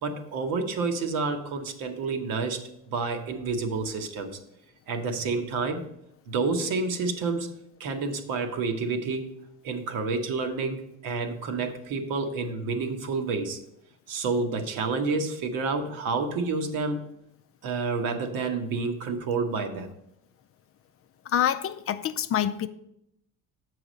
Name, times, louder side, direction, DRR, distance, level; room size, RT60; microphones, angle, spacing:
voice 1, 0.0-4.3 4.9-5.8 6.3-7.5 7.8-9.3 9.6-13.6 14.1-17.0 17.6-19.9, right 4 dB, 70° right, 5 dB, 1.1 m, -29 dB
voice 2, 21.3-22.7, left 10 dB, 40° left, 11 dB, 0.4 m, -26 dB
7.1 x 4.8 x 5.1 m, 0.79 s
supercardioid pair, 80°, 36 cm